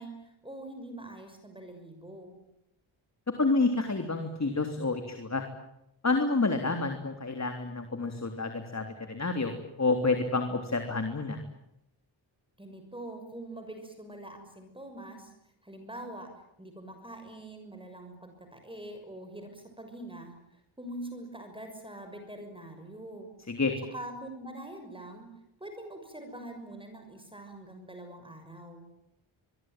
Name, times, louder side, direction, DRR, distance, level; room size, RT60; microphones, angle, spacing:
voice 1, 0.0-2.4 12.6-15.3 15.6-16.3 16.6-23.3 23.9-25.3 25.6-28.9, right 1 dB, 10° right, 6 dB, 6.4 m, -44 dB
voice 2, 3.4-5.4 6.0-11.4 23.5-23.7, left 3 dB, 35° left, 6 dB, 3.4 m, -29 dB
25.5 x 23.0 x 9.2 m, 0.83 s
wide cardioid pair, 90°, 47 cm